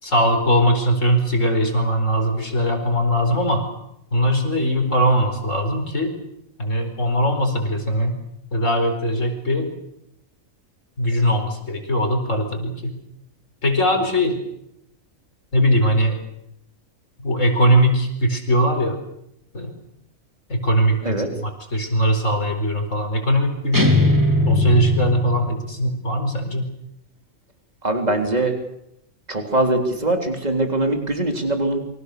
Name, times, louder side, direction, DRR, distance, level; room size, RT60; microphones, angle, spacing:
voice 1, 0.0-3.6 4.1-6.1 6.6-8.2 8.5-9.7 11.0-13.0 13.6-14.4 15.5-16.2 17.2-19.0 19.5-19.7 20.5-24.0 24.5-26.7, equal, 65° left, 5 dB, 5.0 m, -20 dB
sound 1, 23.7-25.8, left 1 dB, 15° right, 3.0 m, -19 dB
voice 2, 27.8-28.6 29.3-31.8, right 2 dB, 30° right, 4 dB, 3.8 m, -22 dB
28.5 x 25.0 x 6.8 m, 0.79 s
omnidirectional pair, 1.4 m